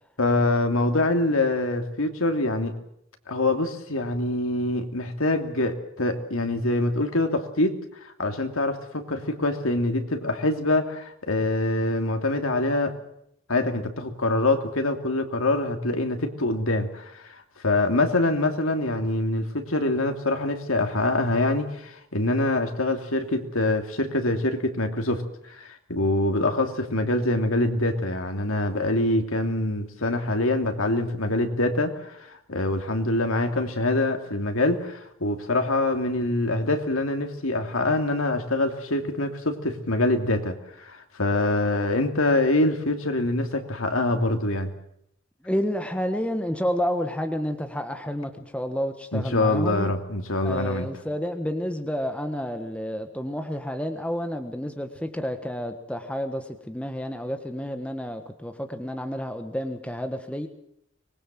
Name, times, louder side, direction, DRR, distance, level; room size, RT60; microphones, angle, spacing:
voice 1, 0.2-2.7 3.3-7.8 8.0-12.9 13.5-17.3 17.6-44.7 49.1-50.9, left 2 dB, 90° left, 5 dB, 2.9 m, -25 dB
voice 2, 45.4-49.9 50.4-60.5, equal, 5° left, 6 dB, 1.4 m, -30 dB
24.5 x 20.0 x 7.7 m, 0.75 s
head